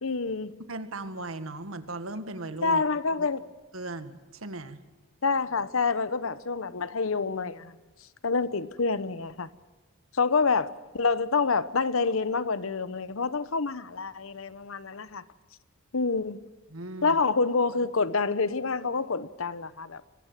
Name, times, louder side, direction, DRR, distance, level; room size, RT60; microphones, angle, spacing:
voice 1, 0.0-0.5 2.6-3.4 5.2-7.8 8.2-9.5 10.1-15.2 15.9-16.4 17.0-20.0, left 4 dB, 75° left, 1.0 m, -27 dB
voice 2, 0.7-2.8 3.2-3.3 3.7-4.8 16.7-17.2, right 2 dB, 80° right, 1.8 m, -37 dB
23.5 x 18.5 x 7.5 m
head